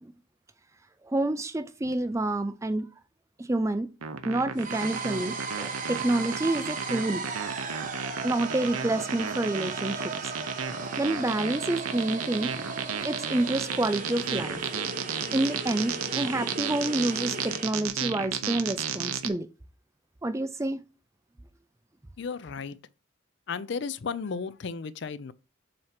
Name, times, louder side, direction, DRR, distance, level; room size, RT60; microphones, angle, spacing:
voice 1, 1.0-2.9 3.4-3.9 4.2-7.2 8.2-10.3 11.0-12.5 13.0-14.6 15.3-19.5 20.2-20.8, right 2 dB, 15° right, 0.4 m, -28 dB
sound 1, 4.0-19.3, right 7 dB, 90° right, 0.8 m, -33 dB
sound 2, 4.6-17.7, right 4 dB, 40° right, 0.9 m, -36 dB
voice 2, 22.2-22.8 23.5-25.3, left 5 dB, 55° left, 0.4 m, -34 dB
7.7 x 2.9 x 5.8 m
head